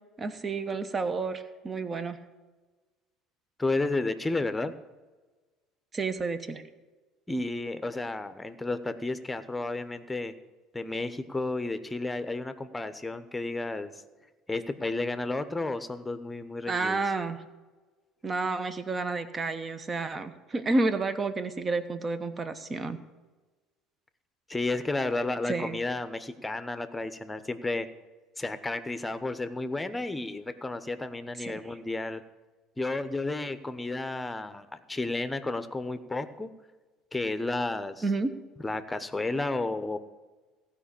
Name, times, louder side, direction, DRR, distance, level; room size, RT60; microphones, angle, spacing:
voice 1, 0.2-2.2 5.9-6.6 16.7-17.4 18.2-23.0 25.5-25.8 31.4-31.5 38.0-38.3, right 3 dB, 30° right, 11 dB, 1.1 m, -30 dB
voice 2, 3.6-4.7 7.3-10.3 10.7-13.9 14.5-17.0 24.5-27.9 28.4-32.2 32.8-36.5 37.1-38.0 38.6-40.0, left 2 dB, 15° left, 11 dB, 1.0 m, -32 dB
15.5 x 5.2 x 8.6 m, 1.3 s
hypercardioid pair, 70°, 0 cm